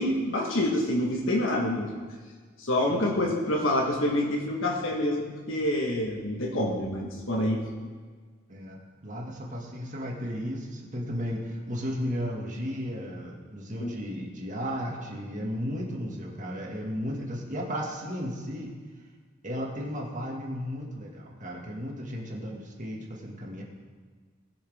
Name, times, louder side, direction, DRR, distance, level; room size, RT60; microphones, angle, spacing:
voice 1, 0.0-1.9 2.6-7.6 13.8-13.9, left 1 dB, 80° left, -1 dB, 1.4 m, -27 dB
voice 2, 2.9-3.3 8.5-18.7 19.4-23.6, equal, 40° right, -1 dB, 1.9 m, -34 dB
19.0 x 6.4 x 3.6 m, 1.5 s
head